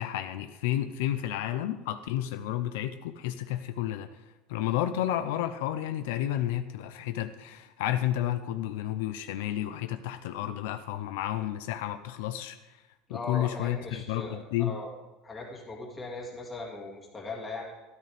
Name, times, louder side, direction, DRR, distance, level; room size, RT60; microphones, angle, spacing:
voice 1, 0.0-4.1 4.5-12.8 13.1-14.7, left 12 dB, 75° left, 9 dB, 0.6 m, -31 dB
voice 2, 13.1-14.9 15.2-17.7, left 3 dB, 15° left, -1 dB, 2.1 m, -39 dB
13.0 x 12.5 x 3.4 m, 1.1 s
cardioid pair, 180°, 0 cm